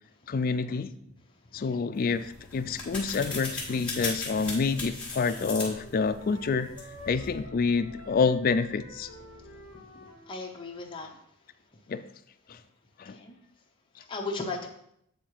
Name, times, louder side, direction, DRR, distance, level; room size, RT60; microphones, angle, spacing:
voice 1, 0.3-0.9 1.5-6.7 7.1-9.1 11.9-12.0 12.5-12.6 13.0-13.2, left 4 dB, 40° left, 0.3 m, -28 dB
sound 1, 2.0-7.3, left 3 dB, 5° left, 1.6 m, -38 dB
sound 2, 5.2-10.3, left 2 dB, 65° right, 2.6 m, -49 dB
sound 3, 6.9-10.4, left 2 dB, 85° right, 2.4 m, -50 dB
voice 2, 9.9-11.1 13.0-13.4 14.1-14.7, left 3 dB, 20° left, 0.8 m, -37 dB
8.1 x 3.8 x 4.7 m
head